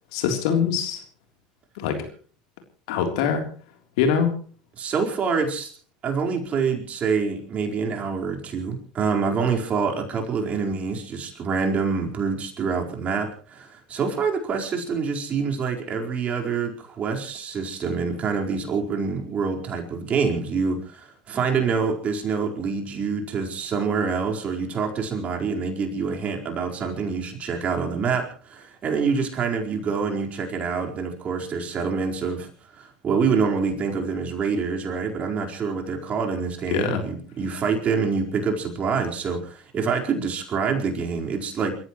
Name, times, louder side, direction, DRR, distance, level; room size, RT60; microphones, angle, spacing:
voice 1, 0.1-1.0 1.8-2.1 2.9-3.5 4.0-4.4 36.7-37.1, left 7 dB, 70° left, 5 dB, 3.6 m, -23 dB
voice 2, 4.8-5.7 6.0-41.8, right 5 dB, 40° right, 2 dB, 4.7 m, -26 dB
28.5 x 14.5 x 3.2 m, 0.42 s
hypercardioid pair, 80°, 4 cm